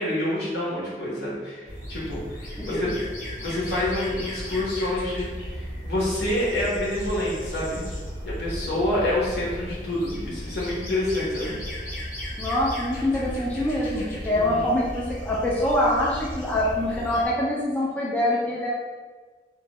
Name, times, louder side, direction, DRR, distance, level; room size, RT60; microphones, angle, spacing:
voice 1, 0.0-2.9 3.4-7.8 8.2-11.5 14.4-14.6, left 1 dB, 70° left, -6 dB, 1.0 m, -27 dB
sound 1, 1.7-17.3, equal, 45° left, 0.8 m, -35 dB
voice 2, 2.6-3.0 12.4-18.7, left 1 dB, 10° left, -6 dB, 0.3 m, -25 dB
2.6 x 2.1 x 2.9 m, 1.4 s
head